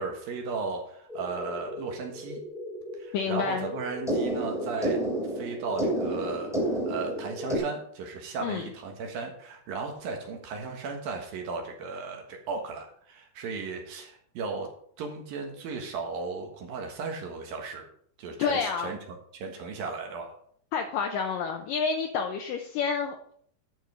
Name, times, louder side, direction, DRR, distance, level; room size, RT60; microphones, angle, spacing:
voice 1, 0.0-2.4 2.9-5.0 5.3-14.7 15.0-17.9 18.2-20.3, right 4 dB, 65° right, 2 dB, 3.1 m, -35 dB
sound 1, 1.1-7.6, right 1 dB, ahead, 2.1 m, -32 dB
voice 2, 3.1-3.7 8.4-8.6 18.4-18.9 20.7-23.3, left 6 dB, 75° left, 4 dB, 2.1 m, -29 dB
11.5 x 5.4 x 6.6 m, 0.62 s
omnidirectional pair, 4.6 m